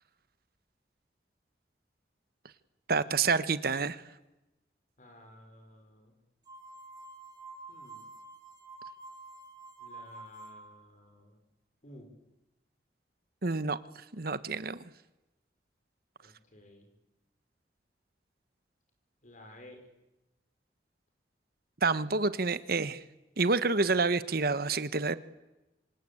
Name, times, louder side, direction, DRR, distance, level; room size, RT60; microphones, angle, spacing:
voice 1, 2.9-4.0 13.4-13.8 14.1-14.8 21.8-23.0 23.4-25.1, right 4 dB, 60° right, 14 dB, 1.1 m, -28 dB
voice 2, 5.0-6.1 7.7-8.1 9.8-11.4 11.8-12.1 16.2-16.9 19.2-19.8, left 1 dB, 45° left, 5 dB, 5.7 m, -54 dB
sound 1, 6.5-10.8, right 3 dB, 25° right, 2.8 m, -48 dB
26.5 x 25.5 x 8.7 m, 1.0 s
head